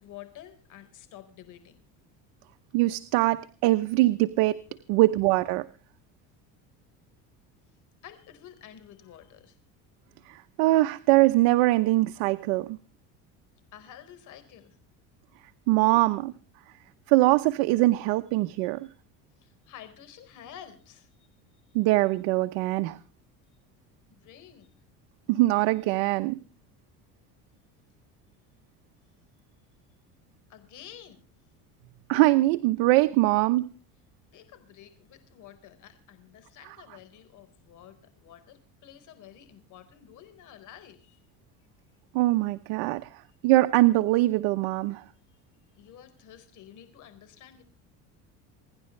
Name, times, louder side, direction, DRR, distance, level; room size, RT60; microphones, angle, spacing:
voice 1, 0.0-1.8 4.7-5.0 8.0-9.6 13.7-14.8 19.4-21.3 21.7-21.8 24.1-24.7 30.5-31.2 34.3-41.2 45.0-45.4 45.7-47.6, left 10 dB, 60° left, 11 dB, 4.4 m, -50 dB
voice 2, 2.7-4.6 4.9-5.7 10.3-12.8 15.7-16.3 17.1-18.9 21.7-23.0 25.3-26.3 32.1-33.7 42.1-43.1 43.4-45.0, right 18 dB, 85° right, 9 dB, 0.9 m, -22 dB
28.5 x 11.0 x 3.2 m, 0.40 s
cardioid pair, 115°, 34 cm